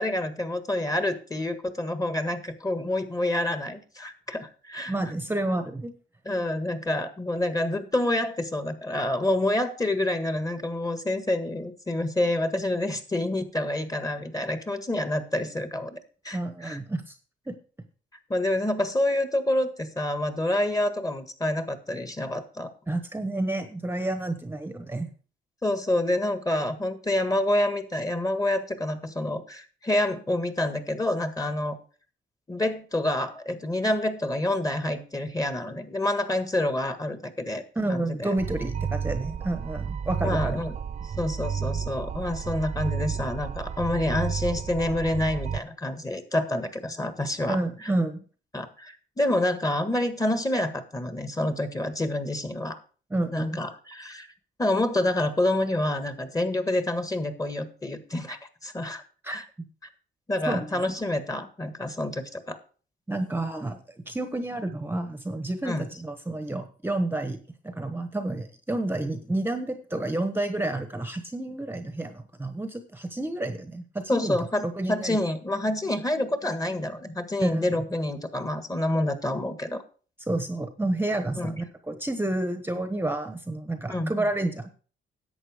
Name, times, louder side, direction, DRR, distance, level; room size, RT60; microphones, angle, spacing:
voice 1, 0.0-4.9 6.2-16.8 18.3-22.7 25.6-31.8 32.5-37.6 37.9-38.3 40.2-40.7 41.0-47.9 48.5-52.8 53.3-54.3 54.6-59.4 60.3-62.6 65.6-65.9 74.1-79.8 81.4-81.6 83.9-84.1, left 1 dB, 15° left, 9 dB, 1.7 m, -28 dB
voice 2, 4.9-5.9 16.3-17.1 17.5-17.6 22.9-25.1 37.7-40.6 47.5-48.2 53.1-53.6 59.2-59.4 60.5-60.8 63.1-67.4 67.6-74.4 74.6-75.2 77.4-77.7 80.3-84.7, right 2 dB, 10° right, 8 dB, 1.2 m, -30 dB
sound 1, 38.4-45.6, right 7 dB, 35° right, 0.5 m, -32 dB
11.0 x 7.9 x 5.0 m, 0.40 s
cardioid pair, 90°, 20 cm